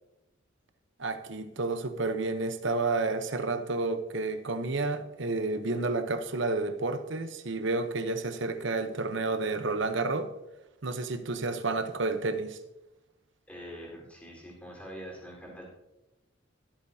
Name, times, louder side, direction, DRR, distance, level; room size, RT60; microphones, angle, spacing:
voice 1, 1.0-10.3 10.8-12.6, right 3 dB, 65° right, 1.0 m, -30 dB
voice 2, 13.5-15.7, equal, 5° left, 4.4 m, -44 dB
24.5 x 8.3 x 2.8 m
head